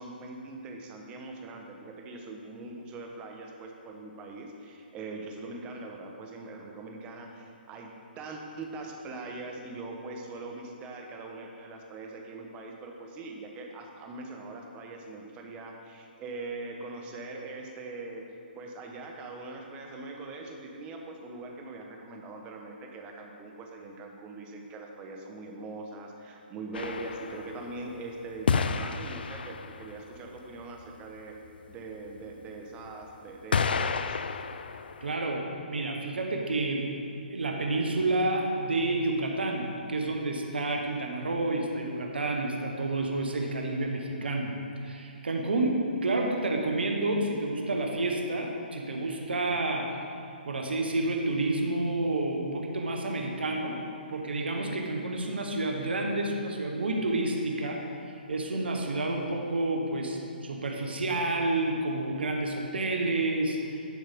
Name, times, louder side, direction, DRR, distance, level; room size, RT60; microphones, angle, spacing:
voice 1, 0.0-18.3 18.5-31.4 31.7-34.2, right 3 dB, 20° right, 2 dB, 0.9 m, -42 dB
sound 1, 26.7-27.9 28.5-30.0 32.3-32.4 33.5-35.1, left 5 dB, 65° left, 0.4 m, -30 dB
voice 2, 35.0-36.9 37.3-44.5 44.8-50.0 50.4-53.8 54.1-57.8 58.3-63.8, right 2 dB, 75° right, 2 dB, 1.1 m, -29 dB
10.5 x 5.4 x 3.5 m, 2.6 s
figure-of-eight pair, 140°, 6 cm